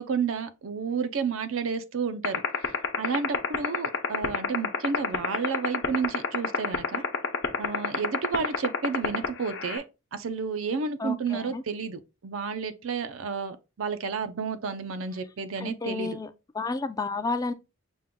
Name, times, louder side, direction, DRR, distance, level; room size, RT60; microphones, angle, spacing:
voice 1, 0.0-2.4 3.0-7.0 7.6-9.8 10.1-16.2, right 5 dB, 85° right, 0.5 m, -31 dB
sound 1, 2.2-9.8, left 6 dB, 60° left, 0.7 m, -23 dB
voice 2, 11.0-11.6 15.6-16.3 16.5-17.5, left 3 dB, 20° left, 0.3 m, -31 dB
5.2 x 2.2 x 3.5 m
head